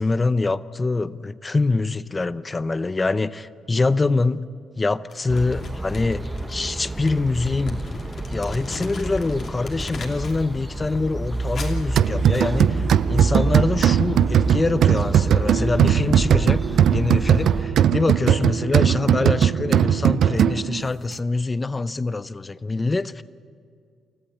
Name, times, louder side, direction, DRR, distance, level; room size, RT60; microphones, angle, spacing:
voice 1, 0.0-4.5 4.8-7.8 8.3-16.6 16.9-23.2, left 3 dB, 25° left, 15 dB, 0.7 m, -24 dB
Crumpling crinkling, 5.1-10.5 10.8-12.8, left 3 dB, 55° left, 2.8 m, -40 dB
sound 1, 5.3-17.6, right 2 dB, 10° right, 1.2 m, -29 dB
sound 2, 12.0-20.8, right 9 dB, 70° right, 0.5 m, -19 dB
28.5 x 14.5 x 8.3 m, 2.3 s
cardioid pair, 90°, 0 cm